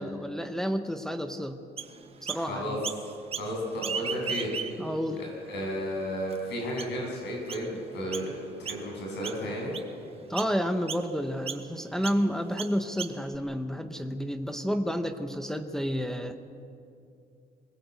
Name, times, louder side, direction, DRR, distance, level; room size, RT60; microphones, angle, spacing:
voice 1, 0.0-1.6 2.2-2.8 4.8-5.2 10.3-16.4, equal, 5° left, 6 dB, 0.8 m, -30 dB
Chirp tweet, 1.8-2.5 2.8-3.5 3.8-5.0 5.5-5.6 6.3-6.4 6.8-7.1 7.5-7.7 8.1-8.3 8.7-9.0 9.2-9.9 10.4-10.6 10.9-11.1 11.5-11.7 12.0-12.2 12.6-13.4, right 7 dB, 35° right, 1.0 m, -36 dB
voice 2, 2.3-2.8 3.4-4.5 5.2-8.3 8.6-9.7, equal, 75° left, 0 dB, 8.0 m, -33 dB
24.0 x 20.5 x 8.2 m, 2.6 s
cardioid pair, 170°, 18 cm